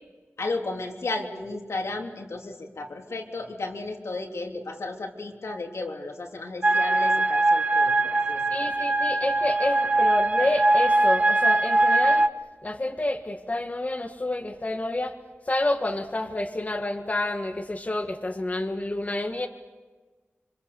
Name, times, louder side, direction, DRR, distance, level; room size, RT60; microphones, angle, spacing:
voice 1, 0.4-8.7, left 2 dB, 85° left, 0 dB, 3.4 m, -34 dB
sound 1, 6.6-12.3, right 2 dB, 30° right, 0.9 m, -21 dB
voice 2, 8.5-12.3 12.6-15.2 15.5-19.5, left 1 dB, 35° left, 4 dB, 1.7 m, -29 dB
26.5 x 26.0 x 7.0 m, 1.3 s
wide cardioid pair, 85°, 5 cm